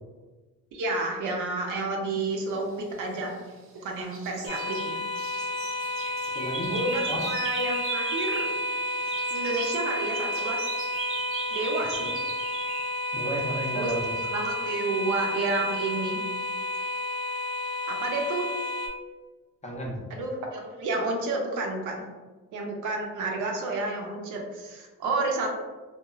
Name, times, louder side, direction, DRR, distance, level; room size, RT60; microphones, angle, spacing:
voice 1, 0.7-3.4 3.8-5.0 6.7-8.5 9.3-10.7 11.5-12.1 13.7-16.2 17.9-18.5 20.1-22.0 22.5-25.5, right 2 dB, 85° right, 0 dB, 0.6 m, -30 dB
sound 1, 3.0-3.8 4.1-8.6 8.9-12.9, right 4 dB, 45° right, 0.5 m, -39 dB
sound 2, 4.5-18.9, left 1 dB, 60° left, 0.7 m, -31 dB
voice 2, 6.3-6.8 7.1-7.3 13.1-14.2 19.6-20.0, right 1 dB, 25° left, -1 dB, 0.6 m, -32 dB
2.9 x 2.1 x 2.3 m, 1.3 s
cardioid pair, 90°, 30 cm